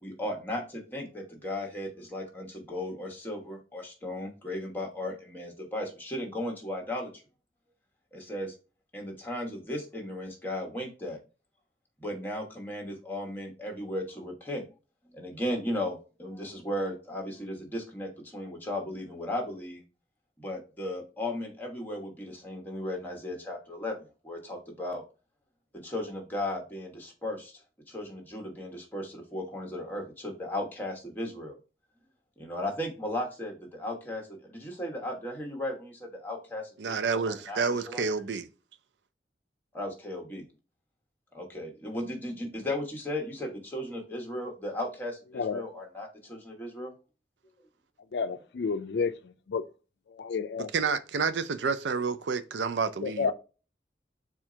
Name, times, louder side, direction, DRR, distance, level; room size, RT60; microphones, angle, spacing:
voice 1, 0.0-7.1 8.1-8.5 8.9-11.2 12.0-14.6 15.1-19.8 20.4-25.0 25.7-27.6 27.9-31.5 32.4-37.6 37.9-38.1 39.7-40.4 41.3-46.9, left 1 dB, 10° left, 1.0 m, -36 dB
voice 2, 36.8-38.5 50.7-53.3, right 5 dB, 85° right, 0.4 m, -29 dB
voice 3, 48.1-49.1 49.5-49.6 50.1-50.7 53.0-53.3, left 5 dB, 75° left, 0.4 m, -30 dB
4.4 x 2.4 x 4.8 m
head